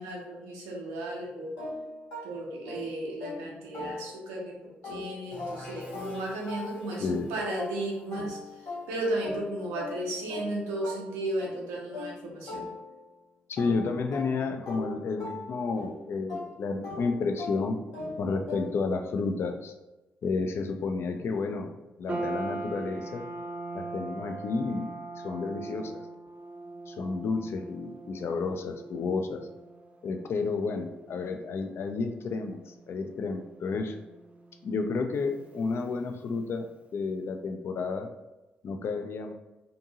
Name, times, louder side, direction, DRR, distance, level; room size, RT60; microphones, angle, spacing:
voice 1, 0.0-1.5 2.2-4.6 4.8-8.4 8.9-12.7, right 1 dB, 75° right, -2 dB, 0.7 m, -34 dB
sound 1, 1.6-4.4 4.8-13.2 13.6-19.0, left 2 dB, 70° left, 1.2 m, -41 dB
sound 2, 5.3-10.9, equal, 90° left, 1.0 m, -49 dB
voice 2, 13.5-17.8 18.2-19.7 20.2-21.7 22.0-23.3 23.7-24.9 25.2-26.0 26.9-29.5 30.0-34.0 34.6-38.1 38.6-39.3, left 4 dB, 50° left, 5 dB, 0.4 m, -31 dB
sound 3, 22.1-36.5, right 2 dB, 25° right, 0.6 m, -42 dB
2.6 x 2.6 x 2.7 m, 1.0 s
hypercardioid pair, 40°, 5 cm